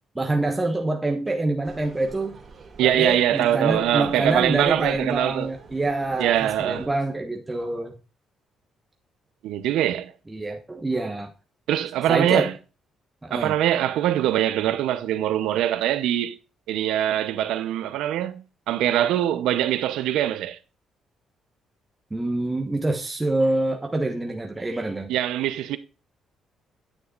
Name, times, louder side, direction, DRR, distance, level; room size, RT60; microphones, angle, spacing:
voice 1, 0.1-2.3 2.8-7.9 10.3-11.3 12.1-12.5 13.2-13.5 22.1-25.1, right 2 dB, 15° right, 1.1 m, -26 dB
sound 1, 1.6-6.9, right 4 dB, 45° right, 3.0 m, -47 dB
voice 2, 2.8-5.5 6.2-6.9 9.4-10.1 11.7-12.5 13.3-16.4 16.7-20.6 25.1-25.8, right 12 dB, 90° right, 0.7 m, -23 dB
9.8 x 6.5 x 2.4 m
cardioid pair, 90°, 0 cm